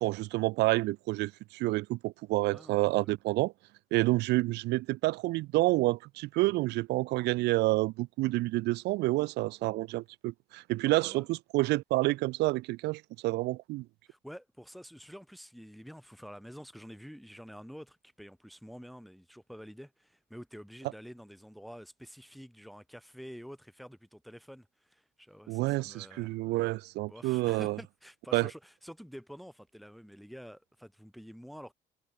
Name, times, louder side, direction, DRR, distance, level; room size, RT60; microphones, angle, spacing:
voice 1, 0.0-3.5 3.9-13.8 25.5-27.8 28.3-28.5, right 20 dB, 85° right, 1.0 m, -29 dB
voice 2, 2.4-3.0 10.9-11.3 14.1-26.7 27.1-31.7, equal, ahead, 7.3 m, -49 dB
cardioid pair, 110°, 17 cm